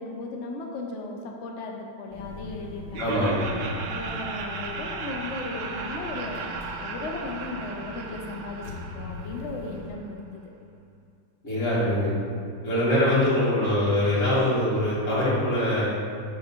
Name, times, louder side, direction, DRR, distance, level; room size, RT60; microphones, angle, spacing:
voice 1, 0.0-3.2 3.8-6.5 6.8-10.4, left 3 dB, 65° left, 1 dB, 0.7 m, -36 dB
sound 1, 2.1-9.9, left 2 dB, 20° left, 1.8 m, -41 dB
Laughter, 2.9-9.9, right 4 dB, 80° right, 1.3 m, -36 dB
voice 2, 3.0-3.5 11.4-12.1 12.6-15.9, left 1 dB, 45° left, -9 dB, 2.4 m, -23 dB
6.1 x 5.9 x 4.3 m, 2.3 s
omnidirectional pair, 1.9 m